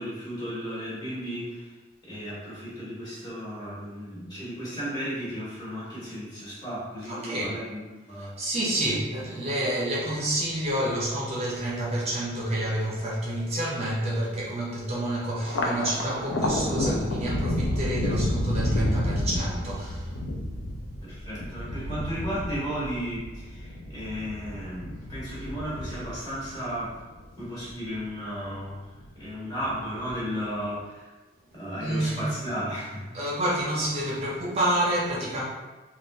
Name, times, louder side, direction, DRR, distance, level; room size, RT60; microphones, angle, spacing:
voice 1, 0.0-1.7 2.1-8.6 21.0-26.9 27.4-28.9 29.2-31.1 31.5-33.1, equal, 20° left, -10 dB, 1.4 m, -34 dB
voice 2, 7.1-7.6 8.2-20.2 31.8-32.4 33.1-35.5, right 1 dB, 35° right, -5 dB, 0.5 m, -28 dB
Thunder, 15.4-28.1 28.5-29.3 29.6-30.5, left 1 dB, 70° left, 0.4 m, -31 dB
3.5 x 2.3 x 2.7 m, 1.2 s
head